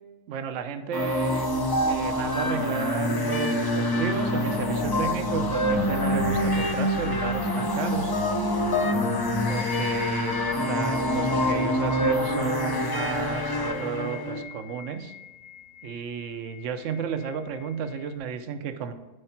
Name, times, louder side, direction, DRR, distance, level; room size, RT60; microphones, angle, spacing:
voice 1, 0.3-1.5 1.9-8.1 9.4-10.4 10.6-15.1 15.8-18.9, right 6 dB, 65° right, 9 dB, 1.0 m, -32 dB
sound 1, 0.9-14.4, left 1 dB, 35° left, 0.3 m, -26 dB
sound 2, 9.5-18.2, left 5 dB, 70° left, 2.5 m, -44 dB
9.9 x 4.7 x 4.4 m, 1.2 s
omnidirectional pair, 1.5 m